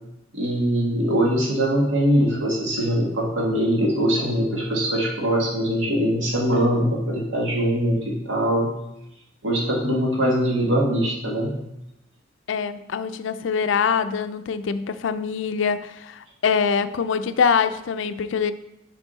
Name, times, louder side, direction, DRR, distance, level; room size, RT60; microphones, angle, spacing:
voice 1, 0.3-8.7 9.4-11.5, equal, 80° right, 1.6 m, -22 dB
voice 2, 12.5-18.5, left 6 dB, 70° left, 0.4 m, -24 dB
7.1 x 4.7 x 4.0 m
head